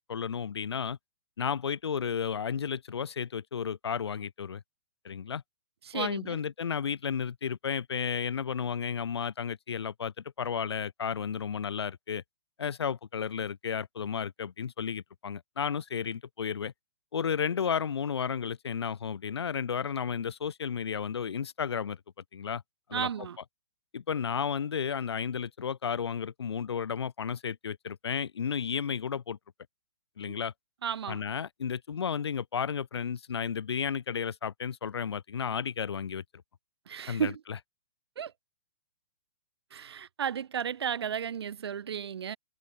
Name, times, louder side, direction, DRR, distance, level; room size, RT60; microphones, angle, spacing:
voice 1, 0.1-1.0 1.4-4.6 5.0-5.4 5.9-12.2 12.6-16.7 17.1-22.0 22.3-22.6 22.9-23.1 23.9-29.4 30.2-30.5 31.1-36.2 37.1-37.3, left 7 dB, 90° left, 2.2 m, -33 dB
voice 2, 5.8-6.4 22.9-23.4 30.3-30.4 30.8-31.2 36.9-37.4 38.2-38.3 39.7-42.4, right 8 dB, 80° right, 1.8 m, -33 dB
hypercardioid pair, 150°, 13 cm